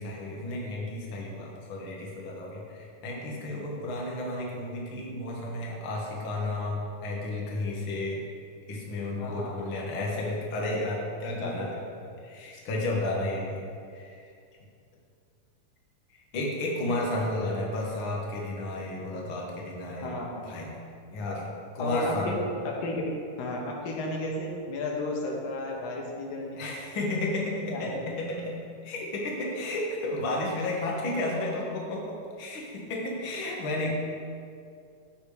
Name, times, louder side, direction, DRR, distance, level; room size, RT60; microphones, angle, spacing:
voice 1, 0.0-8.3 8.7-14.3 16.1-20.2 20.4-20.8 21.1-21.5 21.7-22.4 26.6-33.9, left 2 dB, 45° left, -3 dB, 2.0 m, -32 dB
voice 2, 9.2-9.5 11.4-11.6 20.0-20.4 21.8-22.4 22.6-23.1 23.4-26.6 27.7-27.9, left 2 dB, 90° left, -1 dB, 3.0 m, -33 dB
16.0 x 6.4 x 3.5 m, 2.4 s
omnidirectional pair, 3.9 m